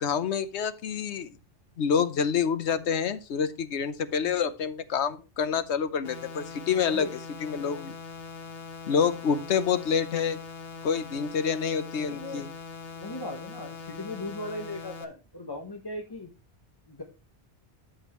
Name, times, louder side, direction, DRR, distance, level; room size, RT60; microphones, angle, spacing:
voice 1, 0.0-1.3 1.8-7.1 7.4-7.9 8.9-10.4 10.8-12.5, left 6 dB, 85° left, 13 dB, 1.1 m, -27 dB
voice 2, 4.1-4.4 6.8-7.1 12.0-12.5 12.9-16.3 16.9-17.0, left 1 dB, 25° left, 3 dB, 0.9 m, -38 dB
sound 1, 6.0-15.0, left 5 dB, 65° left, 1.3 m, -42 dB
12.5 x 5.3 x 3.0 m, 0.30 s
omnidirectional pair, 1.1 m